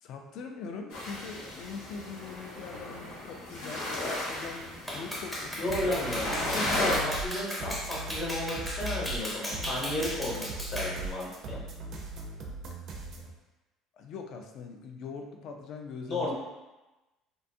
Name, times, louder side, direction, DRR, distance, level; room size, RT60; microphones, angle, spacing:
voice 1, 0.0-6.0 13.2-13.3 14.0-16.3, left 5 dB, 60° left, 3 dB, 0.3 m, -42 dB
sound 1, 0.9-7.0, left 1 dB, 80° left, 0.7 m, -35 dB
Clapping, 4.9-11.0, equal, 10° left, 0.5 m, -36 dB
voice 2, 5.6-11.6 16.1-16.3, left 1 dB, 40° left, -4 dB, 0.8 m, -33 dB
sound 2, 5.7-13.3, right 2 dB, 55° right, 0.4 m, -39 dB
2.5 x 2.3 x 2.6 m, 1.1 s
cardioid pair, 130°, 0 cm